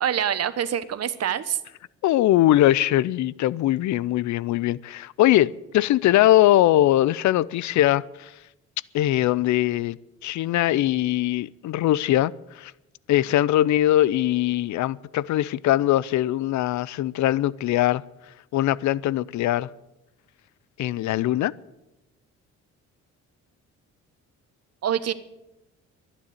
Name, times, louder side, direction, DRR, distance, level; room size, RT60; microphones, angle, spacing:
voice 1, 0.0-1.6 24.8-25.1, right 9 dB, 55° right, 1.1 m, -25 dB
voice 2, 2.0-8.3 8.9-10.0 10.2-12.7 13.1-18.0 18.5-19.7 20.8-21.5, left 14 dB, 70° left, 0.5 m, -21 dB
11.5 x 10.0 x 9.5 m
cardioid pair, 90°, 30 cm